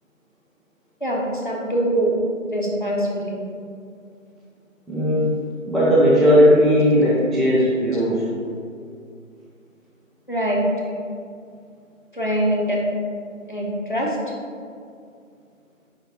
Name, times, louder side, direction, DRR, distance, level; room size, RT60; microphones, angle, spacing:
voice 1, 1.0-2.1 2.5-3.4 10.3-10.6 12.1-12.8 13.5-14.2, right 1 dB, 35° left, -3 dB, 0.6 m, -23 dB
voice 2, 4.9-5.3 5.7-8.2, equal, ahead, -8 dB, 0.4 m, -16 dB
5.1 x 2.5 x 4.2 m, 2.3 s
figure-of-eight pair, 165°, 41 cm